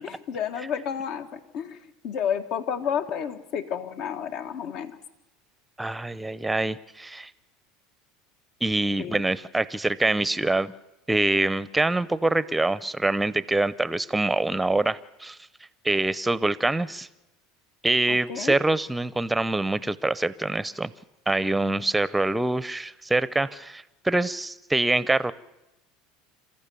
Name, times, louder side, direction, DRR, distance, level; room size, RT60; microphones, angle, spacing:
voice 1, 0.0-1.8 2.0-4.9 9.0-9.2 18.1-18.6, left 8 dB, 60° left, 10 dB, 1.5 m, -31 dB
voice 2, 5.8-7.3 8.6-10.7 11.1-15.4 15.8-17.1 17.8-20.9 21.3-25.3, right 2 dB, 5° right, 17 dB, 0.7 m, -25 dB
27.0 x 14.5 x 7.0 m, 0.98 s
supercardioid pair, 120°, 0 cm